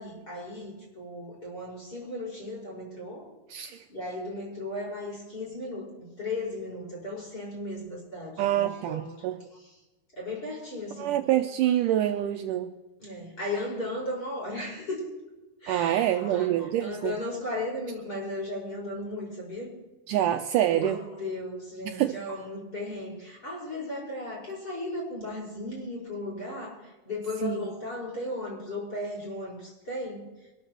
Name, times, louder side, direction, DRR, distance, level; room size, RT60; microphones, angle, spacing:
voice 1, 0.0-3.3 3.9-9.7 10.1-11.2 13.0-15.0 15.6-19.7 20.7-30.3, left 2 dB, 25° left, -3 dB, 5.5 m, -36 dB
voice 2, 3.5-3.8 8.4-9.4 11.0-12.7 15.7-17.1 20.1-21.0 21.9-22.2 27.4-27.6, right 12 dB, 85° right, 6 dB, 1.9 m, -26 dB
24.0 x 13.5 x 3.0 m, 1.1 s
omnidirectional pair, 4.3 m